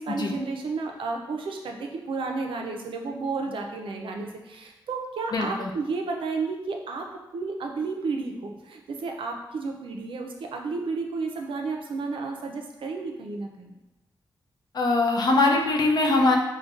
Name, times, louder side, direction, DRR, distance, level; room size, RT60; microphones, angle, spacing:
voice 1, 0.0-7.1 7.3-13.7, right 4 dB, 80° right, 3 dB, 0.5 m, -32 dB
voice 2, 5.3-5.7 14.7-16.4, left 2 dB, 50° left, 1 dB, 0.5 m, -22 dB
5.0 x 2.2 x 2.4 m, 1.0 s
wide cardioid pair, 170°, 9 cm